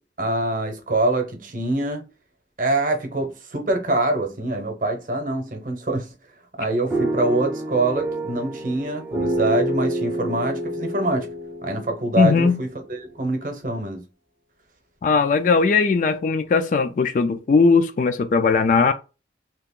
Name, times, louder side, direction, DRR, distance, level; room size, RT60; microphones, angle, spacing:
voice 1, 0.2-2.0 2.6-6.1 6.6-11.3 11.6-14.0, right 2 dB, 45° right, 0.8 m, -24 dB
sound 1, 6.9-12.9, right 1 dB, 10° right, 0.5 m, -28 dB
voice 2, 12.2-12.6 15.0-18.9, left 4 dB, 45° left, 0.3 m, -18 dB
2.9 x 2.4 x 3.6 m
head